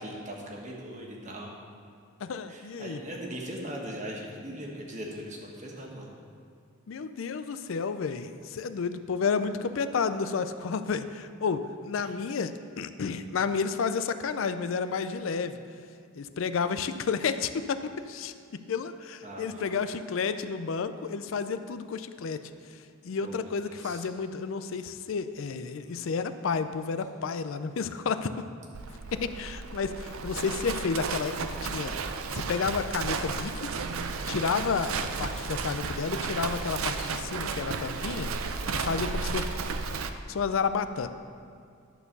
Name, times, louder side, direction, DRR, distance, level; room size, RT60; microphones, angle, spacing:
voice 1, 0.0-1.5 2.5-6.1 12.0-12.1 19.2-19.8 23.2-24.1 38.6-38.8, equal, 35° right, -1 dB, 1.4 m, -40 dB
voice 2, 2.2-3.0 6.9-15.6 16.1-17.8 18.1-18.3 18.7-22.4 23.0-28.3 29.1-31.4 31.6-31.9 32.3-33.7 34.3-38.3 38.7-39.5 40.3-41.1, left 5 dB, 70° left, 11 dB, 0.4 m, -31 dB
Livestock farm animals working animals, 28.7-40.1, right 4 dB, 85° right, 0.5 m, -33 dB
11.0 x 4.5 x 6.8 m, 2.3 s
head